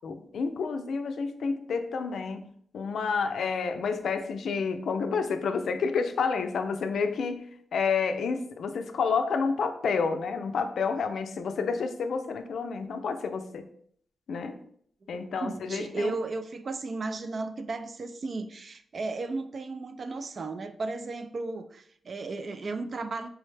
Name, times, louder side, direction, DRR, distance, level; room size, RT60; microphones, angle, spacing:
voice 1, 0.0-7.5 7.7-13.6 14.3-14.6 15.1-16.1, left 5 dB, 80° left, 8 dB, 0.4 m, -29 dB
voice 2, 15.0-23.3, right 3 dB, 50° right, 9 dB, 0.3 m, -35 dB
4.5 x 2.1 x 3.2 m, 0.63 s
wide cardioid pair, 120°, 0 cm